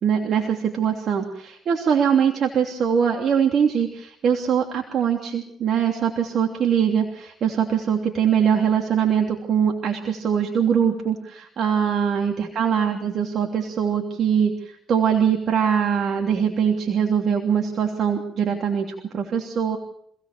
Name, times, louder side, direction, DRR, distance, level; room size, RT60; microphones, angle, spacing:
voice 1, 0.0-19.8, right 7 dB, 65° right, 2 dB, 3.1 m, -22 dB
26.5 x 17.5 x 6.8 m, 0.69 s
cardioid pair, 80°, 0 cm